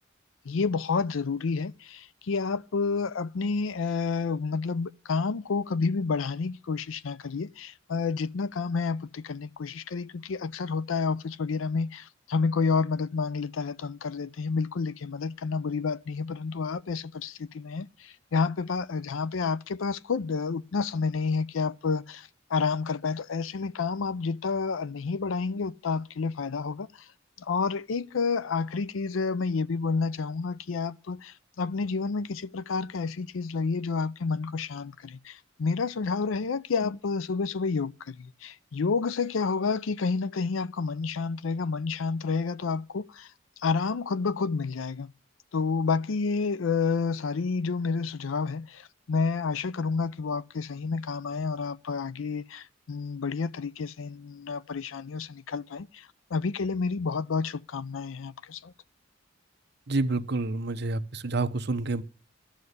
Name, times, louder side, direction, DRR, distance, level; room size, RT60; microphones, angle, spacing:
voice 1, 0.4-27.1 27.4-43.3 43.6-45.1 45.5-58.7, left 4 dB, 80° left, 0.5 m, -30 dB
voice 2, 59.9-62.0, right 3 dB, 55° right, 0.9 m, -28 dB
13.0 x 6.6 x 9.5 m
head